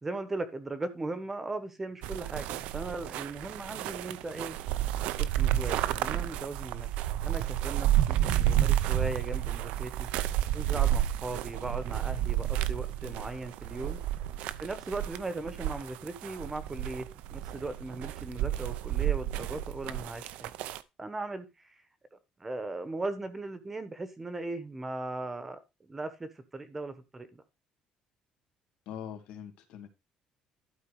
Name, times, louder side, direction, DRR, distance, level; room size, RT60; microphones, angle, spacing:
voice 1, 0.0-4.6 5.2-6.9 7.2-14.0 14.6-20.5 21.0-21.7 22.1-27.4, right 2 dB, 15° right, 1.0 m, -38 dB
sound 1, 2.0-20.8, right 13 dB, 85° right, 0.7 m, -31 dB
voice 2, 28.9-29.9, left 8 dB, 75° left, 2.2 m, -42 dB
12.0 x 4.8 x 4.7 m
cardioid pair, 175°, 2 cm